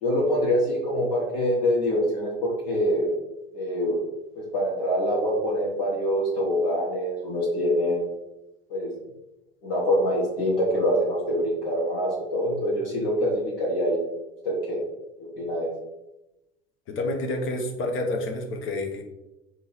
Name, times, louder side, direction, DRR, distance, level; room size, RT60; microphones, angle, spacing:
voice 1, 0.0-3.1 3.5-4.0 4.3-8.0 8.7-8.9 9.6-14.0 14.4-14.8 15.2-15.7, equal, 70° left, -7 dB, 1.6 m, -25 dB
voice 2, 16.9-19.0, left 2 dB, 40° left, 3 dB, 0.9 m, -29 dB
3.7 x 2.8 x 4.4 m, 0.93 s
hypercardioid pair, 75°, 31 cm